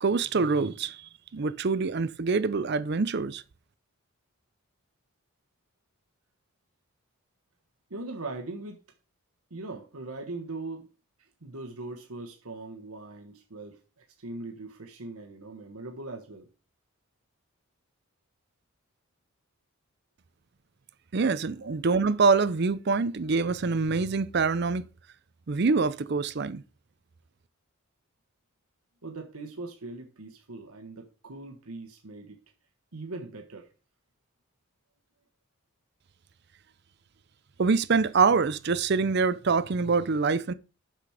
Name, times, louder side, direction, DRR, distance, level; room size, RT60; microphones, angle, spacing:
voice 1, 0.0-1.0 1.3-3.4 21.1-24.8 25.5-26.6 37.6-40.5, right 4 dB, 50° right, 0.5 m, -25 dB
voice 2, 7.9-8.8 9.5-10.9 11.2-16.5 21.6-21.7 29.0-32.4 32.9-33.7, right 2 dB, 85° right, 1.2 m, -40 dB
6.2 x 5.9 x 4.9 m
head